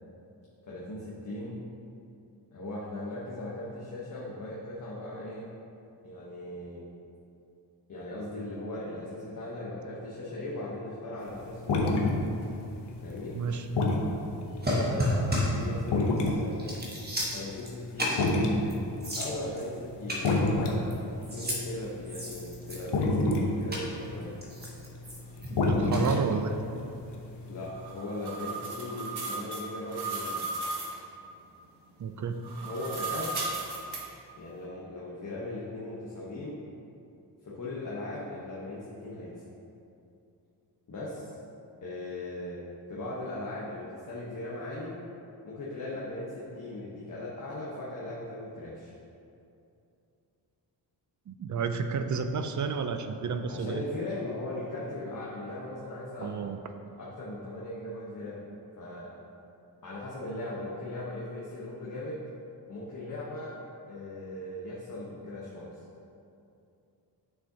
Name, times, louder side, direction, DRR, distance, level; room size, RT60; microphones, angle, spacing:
voice 1, 0.6-1.6 2.5-5.5 6.0-6.8 7.9-12.1 13.0-13.3 14.8-16.8 17.3-18.3 19.2-20.9 21.3-24.3 27.5-30.4 32.6-33.3 34.4-36.6 37.5-39.4 40.9-41.3 41.8-42.6 42.9-45.0 45.4-48.9 53.5-56.4 57.0-58.4 58.8-59.1 59.8-62.2 62.7-63.5 63.9-65.8, left 1 dB, 45° left, -6 dB, 1.1 m, -38 dB
sound 1, 11.2-17.2 17.6-27.7, left 2 dB, 70° left, 0.9 m, -29 dB
voice 2, 13.3-13.7 25.5-26.6 32.0-32.4 51.3-53.9 56.2-56.6, right 5 dB, 45° right, 8 dB, 0.4 m, -31 dB
sound 2, 14.6-15.7 16.2-16.3 16.6-17.7 18.0-18.3 18.7-18.8 19.0-19.7 20.1-20.9 21.2-21.6 22.1-23.0 23.7-23.9 24.4-25.5 25.9-26.2, equal, 20° right, 1.3 m, -31 dB
sound 3, 27.7-31.0 32.3-34.0, right 3 dB, 65° right, 1.3 m, -35 dB
8.5 x 6.6 x 2.8 m, 2.6 s
wide cardioid pair, 130°, 43 cm